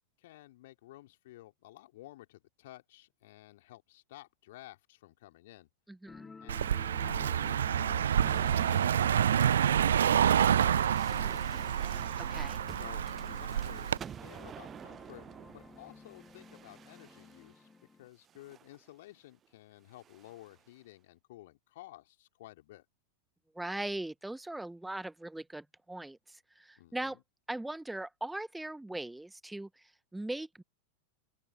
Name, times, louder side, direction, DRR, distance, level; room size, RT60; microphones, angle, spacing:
voice 1, 0.2-5.7 6.4-12.0 12.8-15.3 15.5-17.7 18.0-22.9 26.8-27.2, left 16 dB, 55° left, 3.5 m, -53 dB
voice 2, 5.9-6.3 12.2-12.6 23.5-27.2 27.5-30.6, right 1 dB, 5° right, 1.1 m, -40 dB
sound 1, 6.1-18.1, left 4 dB, 15° left, 2.8 m, -52 dB
Car passing by, 6.5-14.0, right 9 dB, 65° right, 0.4 m, -28 dB
sound 2, 8.2-17.6 18.3-18.8 19.9-20.6, right 9 dB, 25° right, 0.7 m, -49 dB
open air
figure-of-eight pair, 90°, 0 cm